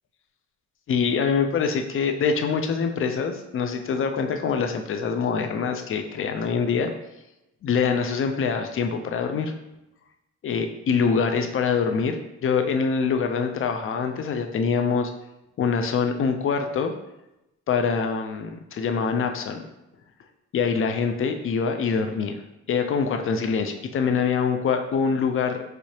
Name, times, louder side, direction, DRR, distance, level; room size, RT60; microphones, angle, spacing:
voice 1, 0.9-6.9 7.6-9.5 10.4-15.1 15.6-16.9 17.7-19.6 20.5-22.4 22.7-25.6, left 5 dB, 45° left, 5 dB, 0.5 m, -24 dB
4.7 x 2.0 x 2.8 m, 0.92 s
cardioid pair, 90°, 30 cm